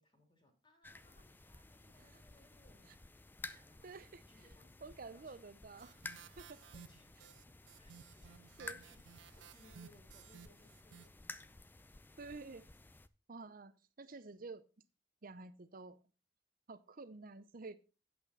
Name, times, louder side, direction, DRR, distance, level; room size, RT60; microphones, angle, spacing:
voice 1, 0.0-5.4 6.1-11.6, left 1 dB, 25° left, 4 dB, 2.3 m, -69 dB
sound 1, 0.8-13.1, left 2 dB, 10° left, 0.4 m, -54 dB
voice 2, 3.4-4.2 4.8-6.0 6.4-6.6 8.6-8.8 12.2-12.7 13.3-14.6 15.2-16.0 16.7-17.8, right 3 dB, 50° right, 14 dB, 0.7 m, -50 dB
sound 2, 5.8-11.1, right 7 dB, 80° right, 0.4 m, -57 dB
8.7 x 8.3 x 4.1 m, 0.31 s
head